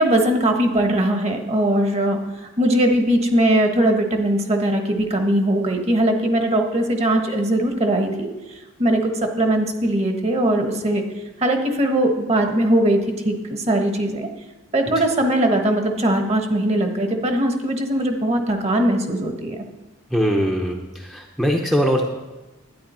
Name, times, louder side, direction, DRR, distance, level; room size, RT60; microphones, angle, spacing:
voice 1, 0.0-11.0 11.4-13.0 13.2-14.3 14.7-19.6, right 1 dB, 35° right, 4 dB, 1.3 m, -20 dB
voice 2, 20.1-22.0, equal, ahead, 0 dB, 0.8 m, -21 dB
12.0 x 9.9 x 4.4 m, 1.1 s
head